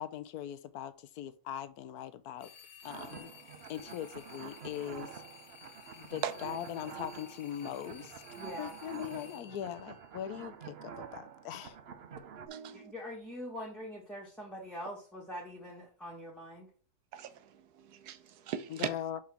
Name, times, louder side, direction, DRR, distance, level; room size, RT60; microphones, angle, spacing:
voice 1, 0.0-2.5 2.8-3.3 3.7-5.2 5.9-8.2 8.6-11.8 18.7-19.2, left 10 dB, 75° left, 1.1 m, -41 dB
sound 1, 2.4-10.6, left 7 dB, 60° left, 1.9 m, -55 dB
sound 2, 2.8-12.5, right 7 dB, 50° right, 0.8 m, -48 dB
voice 2, 8.4-8.8 12.7-16.7, equal, ahead, 1.3 m, -43 dB
voice 3, 12.5-12.9 17.1-18.9, right 9 dB, 85° right, 1.3 m, -39 dB
5.2 x 4.9 x 5.8 m
omnidirectional pair, 1.6 m